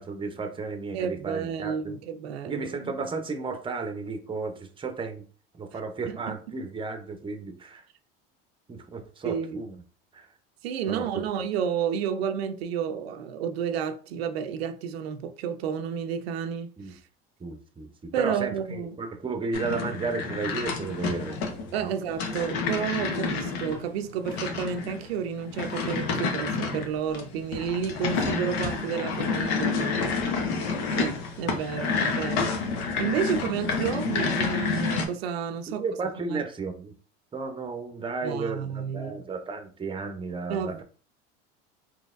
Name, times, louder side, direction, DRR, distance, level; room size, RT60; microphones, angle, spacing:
voice 1, 0.0-2.0 2.5-5.2 5.5-7.8 8.7-9.8 10.1-10.3 10.9-11.2 16.8-16.9 17.4-21.4 21.8-21.9 35.7-36.9 37.3-40.8, right 4 dB, 15° right, 0.7 m, -33 dB
voice 2, 0.9-3.0 6.3-6.4 9.2-9.6 10.6-17.0 18.1-19.0 21.7-30.2 31.0-32.5 33.0-35.8 36.3-36.4 38.2-39.2 40.5-40.8, right 7 dB, 85° right, 0.5 m, -31 dB
sound 1, 19.5-35.1, left 4 dB, 80° left, 0.9 m, -29 dB
3.9 x 2.9 x 2.5 m
hypercardioid pair, 85°, 30 cm